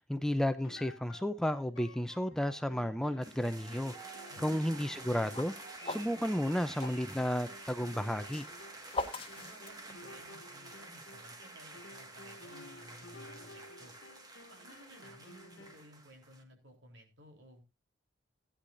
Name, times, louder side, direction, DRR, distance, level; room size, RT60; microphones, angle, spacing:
voice 1, 0.1-3.9 4.4-5.5 5.9-8.5, equal, 5° left, 0.5 m, -32 dB
sound 1, 0.6-15.9, left 2 dB, 85° left, 1.2 m, -54 dB
sound 2, 3.2-16.4, right 2 dB, 20° right, 1.7 m, -50 dB
voice 2, 4.3-5.1 9.3-13.9 14.5-17.6, equal, 75° right, 3.8 m, -57 dB
sound 3, 4.9-7.0 7.9-10.3, left 2 dB, 30° left, 1.3 m, -41 dB
16.5 x 10.0 x 2.6 m
head